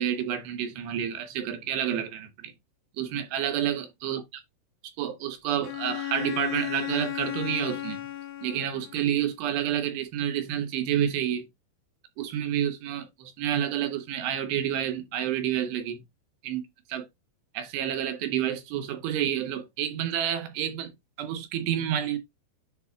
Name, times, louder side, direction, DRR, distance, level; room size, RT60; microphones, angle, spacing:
voice 1, 0.0-2.5 3.0-4.2 5.0-8.0 8.4-11.5 12.2-16.0 16.4-16.6 16.9-17.1 17.5-20.9 21.2-22.2, right 10 dB, 75° right, 2.9 m, -29 dB
Bowed string instrument, 5.6-9.1, left 13 dB, 80° left, 2.0 m, -34 dB
10.5 x 4.8 x 2.3 m
omnidirectional pair, 5.4 m